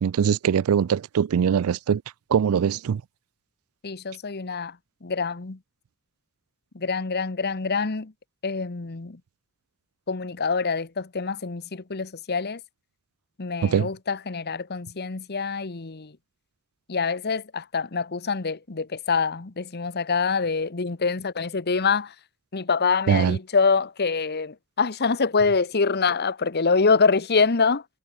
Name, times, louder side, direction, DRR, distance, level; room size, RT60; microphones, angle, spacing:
voice 1, 0.0-2.0 2.3-3.0 13.6-13.9 23.1-23.4, right 7 dB, 80° right, 0.4 m, -22 dB
voice 2, 3.8-5.6 6.7-8.1 8.4-9.2 10.1-12.6 13.4-16.2 16.9-22.2 22.5-27.9, left 4 dB, 50° left, 1.0 m, -25 dB
head